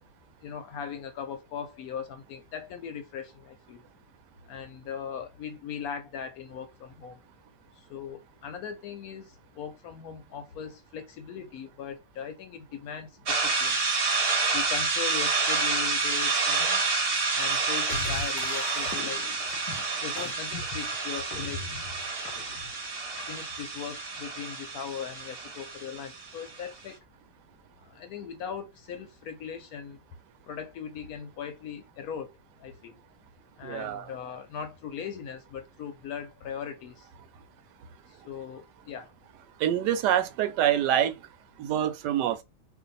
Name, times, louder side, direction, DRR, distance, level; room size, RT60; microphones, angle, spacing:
voice 1, 0.4-3.8 4.5-7.2 7.7-13.8 14.5-16.9 17.3-19.3 20.0-21.7 22.3-22.6 23.2-27.0 27.8-30.0 30.5-32.3 32.6-33.0 33.6-37.1 38.1-39.1, left 7 dB, 70° left, 1.0 m, -39 dB
sound 1, 13.3-26.6, right 4 dB, 45° right, 0.9 m, -29 dB
sound 2, 17.9-23.7, left 5 dB, 85° left, 1.2 m, -40 dB
voice 2, 33.6-34.1 39.6-41.1 41.6-42.4, right 10 dB, 80° right, 1.2 m, -26 dB
2.6 x 2.6 x 3.9 m
omnidirectional pair, 1.8 m